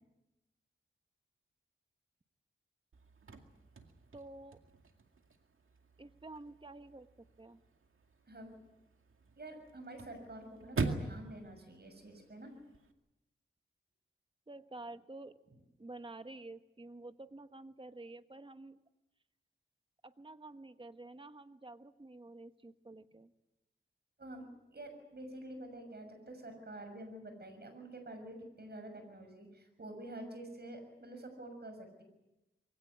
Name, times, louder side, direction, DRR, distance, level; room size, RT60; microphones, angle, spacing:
Chirp tweet / Car / Slam, 2.9-12.9, right 3 dB, 75° right, 2.2 m, -44 dB
voice 1, 4.1-4.6 6.0-7.6 14.5-15.4 15.8-18.8 20.0-23.3, right 2 dB, 25° right, 10 dB, 1.3 m, -50 dB
voice 2, 8.3-8.6 9.4-12.5 24.2-32.0, right 1 dB, 50° right, 6 dB, 6.6 m, -48 dB
23.0 x 17.0 x 9.7 m, 0.97 s
wide cardioid pair, 65°, 21 cm